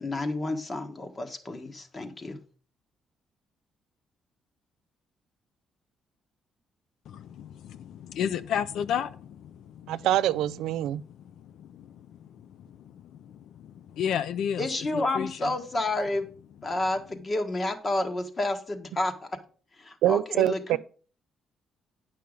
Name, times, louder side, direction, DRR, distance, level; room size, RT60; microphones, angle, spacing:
voice 1, 0.0-2.4 14.6-16.3 16.6-19.4 19.8-20.8, left 2 dB, 30° left, 1.4 m, -30 dB
voice 2, 7.1-10.1 10.8-14.7 14.9-15.5, left 8 dB, 80° left, 0.5 m, -34 dB
voice 3, 9.9-11.0 20.0-20.8, right 13 dB, 90° right, 0.3 m, -25 dB
9.4 x 5.7 x 5.1 m
cardioid pair, 90°, 0 cm